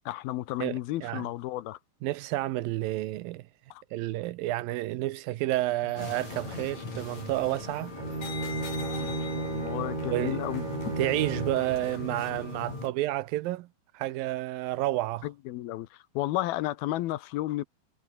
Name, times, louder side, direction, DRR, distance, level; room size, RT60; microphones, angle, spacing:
voice 1, 0.1-1.8 3.7-3.8 9.0-10.7 15.2-17.6, left 16 dB, 85° left, 2.9 m, -33 dB
voice 2, 0.6-1.3 2.0-3.4 3.9-8.0 10.1-10.4 11.0-13.7 13.9-15.3, right 16 dB, 80° right, 2.5 m, -30 dB
sound 1, 5.5-12.4, left 6 dB, 70° left, 5.6 m, -46 dB
sound 2, 6.0-12.9, left 3 dB, 50° left, 8.6 m, -40 dB
Bowed string instrument, 7.9-11.7, right 3 dB, 20° right, 1.1 m, -34 dB
omnidirectional pair, 4.2 m